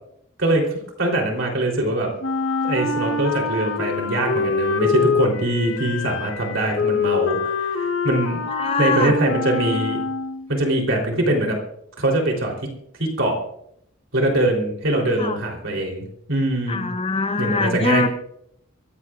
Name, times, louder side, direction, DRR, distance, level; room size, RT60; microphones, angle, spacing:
voice 1, 0.4-2.1 2.6-8.4 8.8-10.0 10.5-11.6 12.0-12.7 13.0-13.4 14.1-16.9 17.4-18.1, right 1 dB, 70° right, 0 dB, 3.6 m, -22 dB
Wind instrument woodwind instrument, 2.2-10.5, left 4 dB, 70° left, 1.1 m, -25 dB
voice 2, 8.5-9.1 15.2-15.4 16.7-18.1, left 4 dB, 30° left, 10 dB, 0.8 m, -23 dB
23.5 x 16.0 x 2.5 m, 0.73 s
head